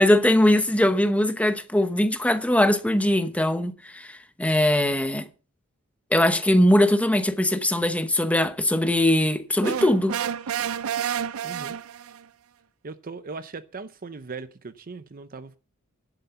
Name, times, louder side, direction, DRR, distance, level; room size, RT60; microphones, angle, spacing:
voice 1, 0.0-5.3 6.1-10.2, left 1 dB, 5° left, 0.9 m, -21 dB
sound 1, 9.6-12.2, right 8 dB, 90° right, 0.5 m, -29 dB
voice 2, 11.4-11.8 12.8-15.6, right 4 dB, 45° right, 0.6 m, -38 dB
11.0 x 7.9 x 5.7 m
head